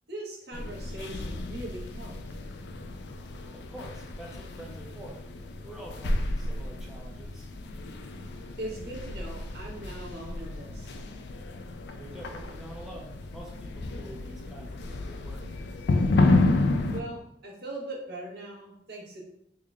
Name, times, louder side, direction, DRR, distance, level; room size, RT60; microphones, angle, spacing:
voice 1, 0.1-2.2 8.6-11.0 16.9-19.2, right 1 dB, 65° right, -2 dB, 0.9 m, -40 dB
sound 1, 0.5-17.0, left 2 dB, 65° left, 0.4 m, -31 dB
voice 2, 3.5-5.2 5.6-7.5 11.9-15.5, right 1 dB, ahead, -3 dB, 0.5 m, -46 dB
3.6 x 2.1 x 3.6 m, 0.74 s
head